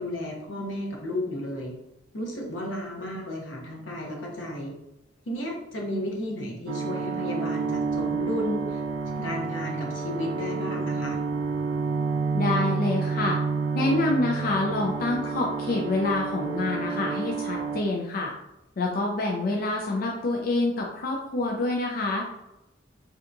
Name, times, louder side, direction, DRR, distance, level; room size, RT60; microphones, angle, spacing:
voice 1, 0.0-1.7 2.1-4.7 5.3-8.8 9.2-11.2, left 1 dB, 85° left, 0 dB, 0.8 m, -33 dB
sound 1, 6.7-17.8, right 4 dB, 80° right, 0.3 m, -29 dB
voice 2, 12.3-13.4 13.7-18.3 18.8-22.4, left 2 dB, 50° left, 0 dB, 0.4 m, -27 dB
3.3 x 2.8 x 2.5 m, 0.92 s
head